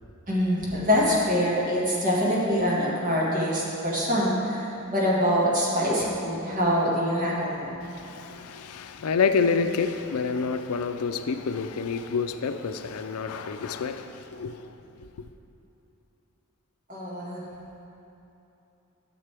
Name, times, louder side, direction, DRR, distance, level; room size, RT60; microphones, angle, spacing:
voice 1, 0.3-7.7 16.9-17.4, equal, 35° right, 1.9 m, -25 dB
voice 2, 7.8-14.7 15.0-15.1, left 5 dB, 85° left, 0.5 m, -28 dB
13.0 x 6.6 x 3.5 m
head